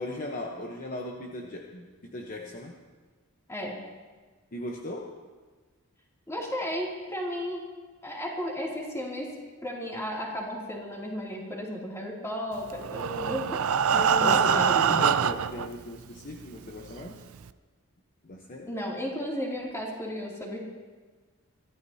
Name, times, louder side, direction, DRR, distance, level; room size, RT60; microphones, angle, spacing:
voice 1, 0.0-2.8 4.5-5.2 14.0-17.2 18.2-18.7, left 1 dB, 40° left, 0 dB, 1.0 m, -37 dB
voice 2, 3.5-3.8 6.3-7.6 8.0-9.3 9.6-15.0 18.7-20.6, equal, 15° left, -3 dB, 2.8 m, -34 dB
Breathing, 12.7-15.7 16.4-16.5 16.9-17.0 17.4-17.5, right 7 dB, 70° right, 0.4 m, -24 dB
23.5 x 14.0 x 2.8 m, 1.4 s
head